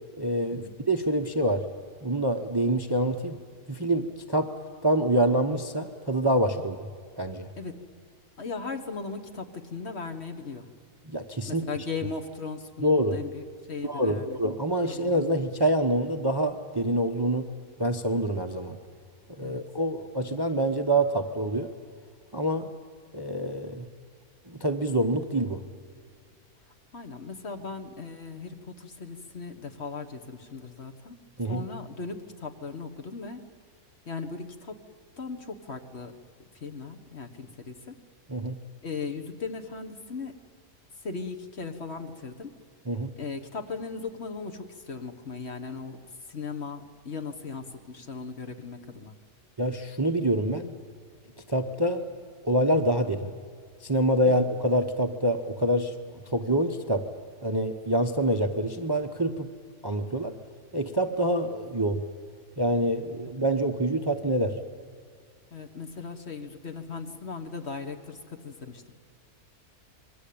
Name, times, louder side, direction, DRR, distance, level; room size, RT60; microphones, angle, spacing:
voice 1, 0.2-1.7 2.0-3.4 3.7-4.5 4.8-6.8 7.2-7.5 11.0-11.7 12.8-13.2 13.8-17.5 17.8-18.8 19.4-21.7 22.3-22.7 23.1-23.9 24.5-25.6 31.4-31.6 38.3-38.6 42.9-43.1 49.6-50.8 51.5-52.1 52.4-53.3 53.8-55.9 56.3-57.1 57.4-59.5 59.8-60.3 60.7-62.0 62.6-64.6, right 1 dB, 20° right, 6 dB, 0.9 m, -26 dB
voice 2, 8.4-10.7 11.5-13.4 13.7-14.4 14.9-15.2 19.4-19.6 26.9-31.2 31.4-33.4 34.1-34.8 35.2-36.1 36.6-38.0 38.8-40.3 41.0-42.5 43.2-46.0 46.3-49.2 54.2-54.3 63.3-63.4 65.5-68.9, left 4 dB, 45° left, 7 dB, 1.7 m, -38 dB
27.0 x 22.0 x 8.7 m, 2.1 s
omnidirectional pair, 1.6 m